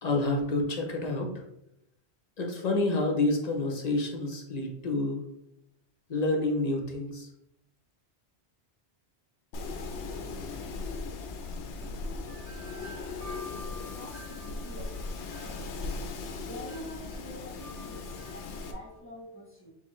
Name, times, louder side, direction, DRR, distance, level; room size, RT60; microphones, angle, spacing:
voice 1, 0.0-1.3 2.4-5.2 6.1-7.3, left 2 dB, 40° left, 2 dB, 0.8 m, -28 dB
Wind, 9.5-18.7, left 3 dB, 85° left, 0.9 m, -38 dB
Wind chime, 12.3-19.0, equal, 90° right, 2.0 m, -50 dB
voice 2, 13.9-15.6 16.4-19.7, left 1 dB, 10° left, -4 dB, 1.4 m, -46 dB
4.4 x 3.7 x 3.1 m, 0.80 s
omnidirectional pair, 1.1 m